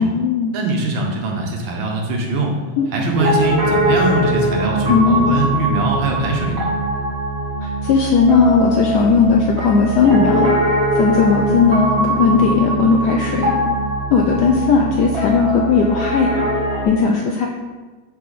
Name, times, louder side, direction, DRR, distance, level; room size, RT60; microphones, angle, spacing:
voice 1, 0.0-0.5 2.8-2.9 4.9-5.3 7.6-10.6 10.9-13.5 14.1-16.4 16.8-17.5, left 5 dB, 80° left, 1 dB, 0.9 m, -16 dB
voice 2, 0.5-2.6 2.9-6.7, right 2 dB, 75° right, 1 dB, 1.7 m, -21 dB
Piano, 3.1-16.9, right 1 dB, 40° right, 1.1 m, -21 dB
6.0 x 4.6 x 3.9 m, 1.3 s
omnidirectional pair, 2.3 m